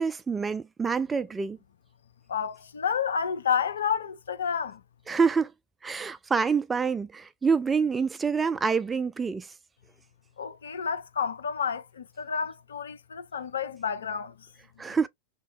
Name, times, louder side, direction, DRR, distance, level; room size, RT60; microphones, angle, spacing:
voice 1, 0.0-1.6 5.1-5.5 5.8-9.5 14.8-15.1, right 5 dB, 15° right, 0.3 m, -26 dB
voice 2, 2.3-4.8 10.4-14.3, left 7 dB, 65° left, 0.6 m, -30 dB
2.9 x 2.6 x 3.1 m
figure-of-eight pair, 90°, 0 cm